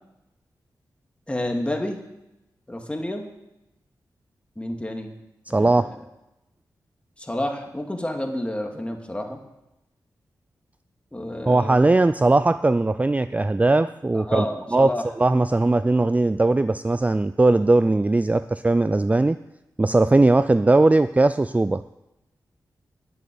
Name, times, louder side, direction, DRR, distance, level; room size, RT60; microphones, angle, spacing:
voice 1, 1.3-2.0 2.7-3.3 4.6-5.1 5.5-6.0 7.2-9.4 11.1-11.8 14.1-15.1, left 1 dB, 15° left, 3 dB, 2.4 m, -30 dB
voice 2, 5.5-5.9 11.5-14.5 14.7-19.4 19.8-21.8, right 2 dB, 20° right, 13 dB, 0.4 m, -19 dB
11.0 x 8.1 x 9.4 m, 0.92 s
cardioid pair, 60°, 8 cm